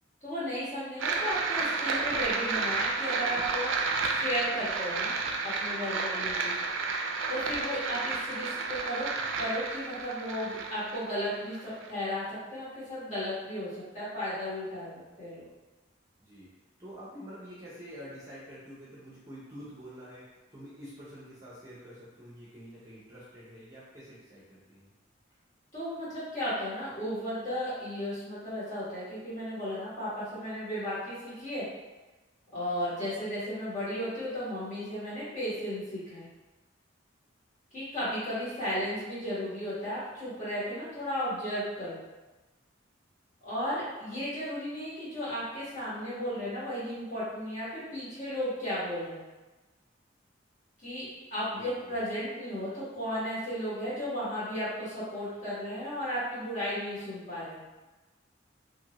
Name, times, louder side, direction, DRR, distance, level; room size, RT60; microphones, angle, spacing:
voice 1, 0.2-5.2 5.4-6.5 7.3-9.1 9.4-12.2 12.5-15.5 25.7-31.7 32.5-36.3 37.7-42.0 43.4-49.2 50.8-57.6, equal, 40° left, -10 dB, 1.3 m, -34 dB
sound 1, 1.0-11.9, right 4 dB, 75° right, 0.3 m, -31 dB
voice 2, 16.8-24.9 38.7-38.9 51.6-52.0, equal, 15° right, -8 dB, 0.6 m, -47 dB
2.7 x 2.6 x 2.9 m, 1.2 s
head